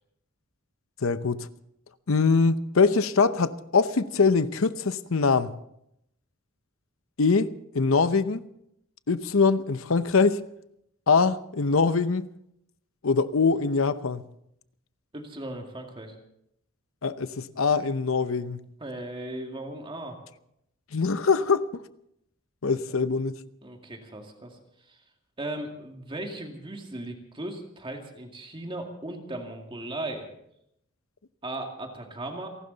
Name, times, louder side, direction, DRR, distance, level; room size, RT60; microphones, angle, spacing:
voice 1, 1.0-1.5 2.1-5.5 7.2-7.5 7.7-8.4 9.1-10.4 11.1-12.3 13.0-14.2 17.0-18.6 20.9-21.6 22.6-23.3, left 4 dB, 70° left, 0.8 m, -23 dB
voice 2, 15.1-16.2 18.8-20.2 22.9-23.0 23.6-24.6 24.9-25.0 25.4-30.3 31.4-32.5, right 1 dB, 25° right, 2.2 m, -37 dB
29.5 x 12.0 x 4.1 m
head